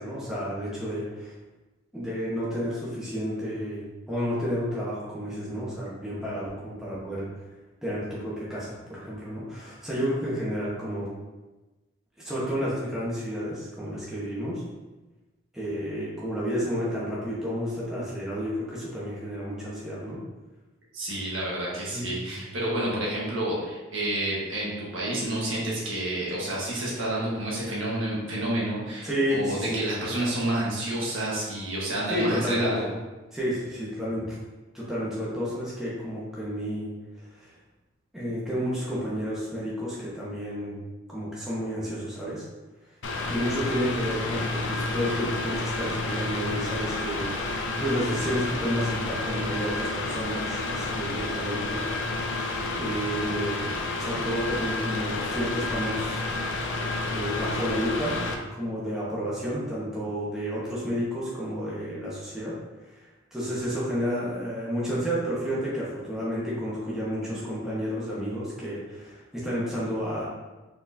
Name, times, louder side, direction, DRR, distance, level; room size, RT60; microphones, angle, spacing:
voice 1, 0.0-1.3 1.9-7.3 7.8-11.1 12.2-14.6 15.5-20.2 21.9-22.4 29.0-29.9 32.1-32.9 33.3-34.4 34.7-36.9 37.4-37.5 38.1-40.7 41.1-42.4 43.3-51.8 52.7-53.7 54.0-56.2 57.1-58.2 58.6-62.5 63.3-70.3, equal, 5° right, -8 dB, 1.1 m, -31 dB
voice 2, 20.9-32.9, right 1 dB, 85° right, -5 dB, 1.5 m, -29 dB
Mechanical fan, 43.0-58.3, left 2 dB, 70° left, 0.5 m, -30 dB
4.4 x 3.9 x 2.7 m, 1.1 s
head